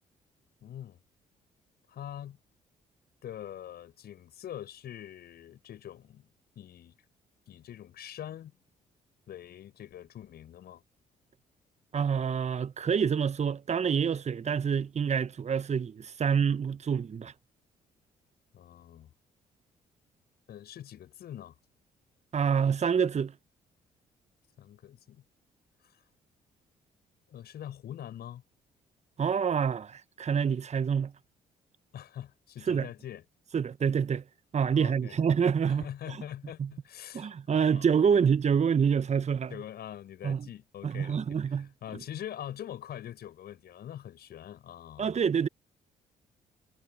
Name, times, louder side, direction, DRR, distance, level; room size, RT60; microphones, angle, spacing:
voice 1, 0.6-1.0 1.9-2.4 3.2-6.3 6.6-6.9 7.5-8.5 9.3-10.8 18.5-19.1 20.5-21.5 24.6-25.2 25.8-25.9 27.3-28.4 31.9-33.2 34.7-35.2 35.7-37.9 39.5-45.1, left 11 dB, 60° left, 7.1 m, -44 dB
voice 2, 11.9-17.3 22.3-23.3 29.2-31.1 32.7-32.9 33.5-34.2 34.5-36.2 36.6-36.7 37.1-39.6 40.2-40.5 40.8-41.7 45.0-45.5, right 7 dB, 40° right, 1.1 m, -27 dB
hypercardioid pair, 45°, 18 cm